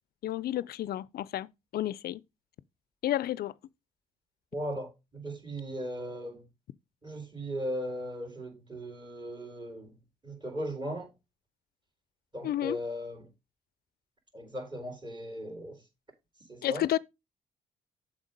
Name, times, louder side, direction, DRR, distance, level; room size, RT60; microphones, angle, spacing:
voice 1, 0.2-1.5 1.7-2.2 3.0-3.5 12.4-12.8 16.6-17.0, left 13 dB, 60° left, 0.5 m, -31 dB
voice 2, 4.5-6.4 7.0-9.9 10.2-11.1 12.3-13.3 14.3-15.8 16.5-16.8, equal, 25° right, 3.5 m, -37 dB
7.2 x 5.0 x 5.2 m
hypercardioid pair, 55°, 18 cm